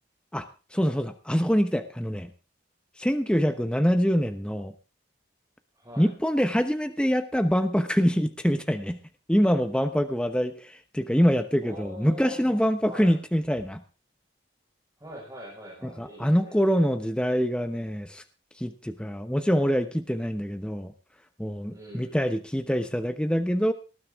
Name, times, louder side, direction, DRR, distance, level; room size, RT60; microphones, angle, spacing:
voice 1, 0.7-2.3 3.0-4.7 6.0-9.0 9.3-13.8 16.0-18.2 18.6-20.9 21.4-23.7, equal, 5° left, 8 dB, 0.9 m, -25 dB
voice 2, 5.7-6.1 11.6-13.2 15.0-16.5 21.7-22.2, equal, 20° right, -4 dB, 5.0 m, -43 dB
19.0 x 12.5 x 3.6 m, 0.33 s
head